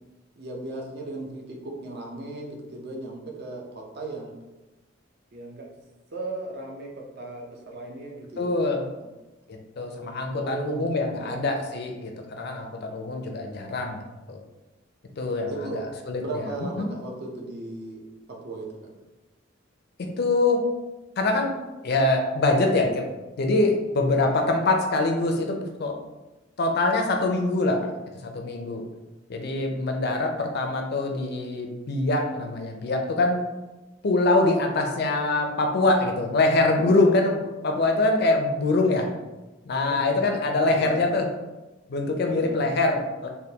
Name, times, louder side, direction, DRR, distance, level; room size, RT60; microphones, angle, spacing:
voice 1, 0.4-4.4 5.3-5.7 6.1-6.9 7.2-8.5 10.3-10.8 11.2-11.4 15.5-15.8 16.2-18.8 39.8-40.3 40.5-41.0 42.3-42.6, right 2 dB, 55° right, -1 dB, 0.6 m, -36 dB
voice 2, 8.4-8.8 9.5-14.0 14.3-14.4 15.2-15.5 16.1-16.9 20.0-20.6 21.2-21.6 21.8-23.1 23.4-26.0 26.6-27.9 28.2-28.9 29.3-33.4 34.0-39.1 39.7-41.3 41.9-43.3, left 2 dB, 55° left, 3 dB, 0.4 m, -24 dB
3.3 x 2.2 x 2.8 m, 1.1 s
head